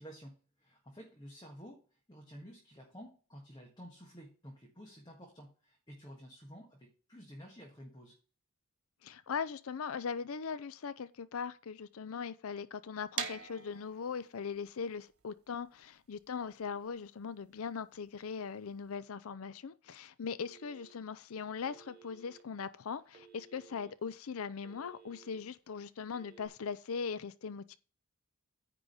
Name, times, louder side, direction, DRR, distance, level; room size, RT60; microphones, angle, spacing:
voice 1, 0.0-8.2, equal, 20° left, 1.6 m, -52 dB
voice 2, 9.0-27.8, left 6 dB, 75° left, 0.5 m, -40 dB
sound 1, 13.1-18.9, right 7 dB, 80° right, 1.4 m, -45 dB
Telephone, 20.5-21.2 21.6-22.4 23.1-23.9 24.3-25.4 26.1-26.5, right 6 dB, 45° right, 1.9 m, -57 dB
9.8 x 3.8 x 6.5 m
head